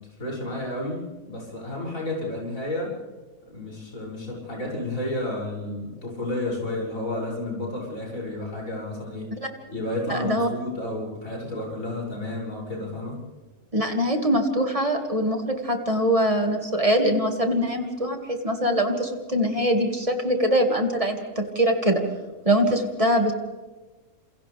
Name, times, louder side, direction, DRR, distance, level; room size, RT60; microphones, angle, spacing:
voice 1, 0.2-2.9 3.4-9.3 9.7-13.2, left 1 dB, 65° left, -3 dB, 7.3 m, -31 dB
voice 2, 10.1-10.5 13.7-22.0 22.5-23.3, equal, 25° right, 4 dB, 2.3 m, -23 dB
28.5 x 27.5 x 3.5 m, 1.3 s
omnidirectional pair, 1.5 m